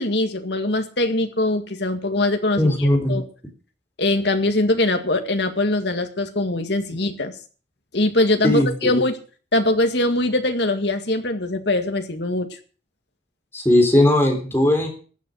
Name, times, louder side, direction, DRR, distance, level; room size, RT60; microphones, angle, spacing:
voice 1, 0.0-3.2 4.0-7.3 7.9-9.2 9.5-12.5, left 2 dB, 60° left, 6 dB, 2.0 m, -22 dB
voice 2, 2.6-3.2 8.4-8.9 13.5-14.9, left 1 dB, 10° left, 2 dB, 3.5 m, -18 dB
15.0 x 9.3 x 6.4 m, 0.39 s
head